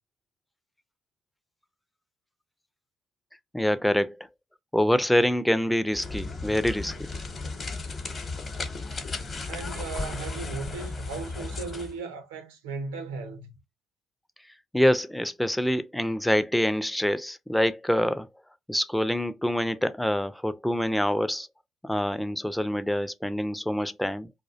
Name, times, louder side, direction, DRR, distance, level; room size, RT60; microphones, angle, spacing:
voice 1, 3.5-4.2 4.7-6.9 14.7-18.3 18.7-21.5 21.8-24.3, equal, 5° left, 0.4 m, -25 dB
sound 1, 5.9-12.0, left 3 dB, 40° left, 0.8 m, -35 dB
voice 2, 9.5-13.5, right 4 dB, 85° right, 0.6 m, -37 dB
2.3 x 2.1 x 2.6 m
hypercardioid pair, 55°, 0 cm